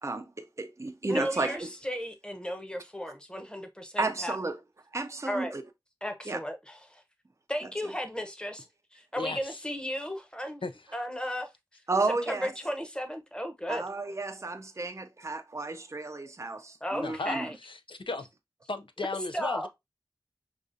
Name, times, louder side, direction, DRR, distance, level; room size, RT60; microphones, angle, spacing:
voice 1, 0.0-1.7 4.0-4.6 4.9-5.6 6.3-6.4 11.9-12.5 13.7-17.5, right 3 dB, 35° right, 0.4 m, -32 dB
voice 2, 1.1-4.4 5.3-5.5 6.0-7.0 7.5-8.7 8.9-10.6 10.9-11.5 12.1-13.8 16.8-17.5 19.3-19.7, equal, 10° left, 0.8 m, -34 dB
voice 3, 9.2-9.6 10.6-10.7 17.0-17.4 17.6-18.3 18.7-19.7, left 3 dB, 80° left, 0.5 m, -35 dB
4.9 x 2.3 x 2.6 m
wide cardioid pair, 45°, 9 cm